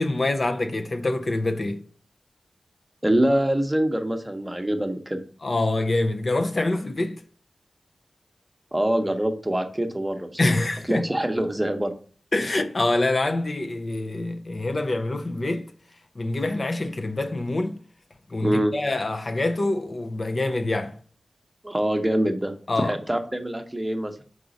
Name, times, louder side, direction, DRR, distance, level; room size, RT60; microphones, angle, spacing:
voice 1, 0.0-1.8 5.4-7.2 10.4-11.1 12.3-15.7 16.2-17.8 18.3-21.0 22.7-23.0, left 2 dB, 45° left, 0.5 m, -25 dB
voice 2, 3.0-5.2 8.7-10.5 10.9-11.9 18.4-18.7 21.6-24.1, right 1 dB, 15° right, 0.8 m, -24 dB
4.8 x 3.8 x 5.1 m
wide cardioid pair, 75°, 0 cm